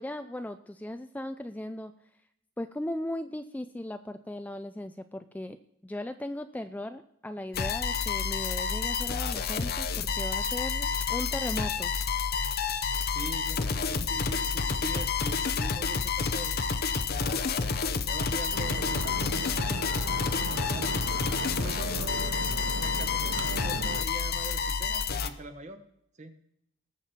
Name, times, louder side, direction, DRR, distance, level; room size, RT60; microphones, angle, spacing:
voice 1, 0.0-1.9 2.6-5.6 5.8-11.9, left 1 dB, 10° left, 9 dB, 0.3 m, -37 dB
sound 1, 7.5-25.3, left 5 dB, 50° left, 0.7 m, -29 dB
voice 2, 13.1-20.9 21.5-22.5 22.8-25.8 26.2-26.3, right 2 dB, 35° right, 8 dB, 1.2 m, -44 dB
sound 2, 18.5-24.0, right 4 dB, 80° right, 0.7 m, -37 dB
19.5 x 7.3 x 4.3 m, 0.77 s
head